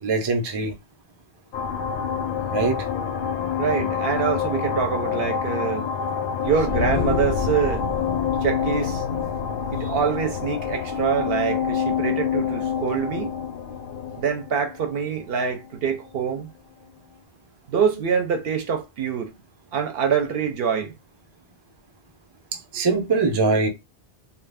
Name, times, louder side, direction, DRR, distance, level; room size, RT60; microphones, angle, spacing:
voice 1, 0.0-0.8 2.5-2.9 22.5-23.7, right 4 dB, 40° right, 0.4 m, -22 dB
sound 1, 1.5-15.7, left 7 dB, 60° left, 0.6 m, -27 dB
voice 2, 3.6-5.9 6.4-7.9 8.4-9.0 9.7-13.4 14.2-16.5 17.7-19.3 19.7-20.9, right 7 dB, 65° right, 0.7 m, -25 dB
2.3 x 2.1 x 3.3 m
omnidirectional pair, 1.2 m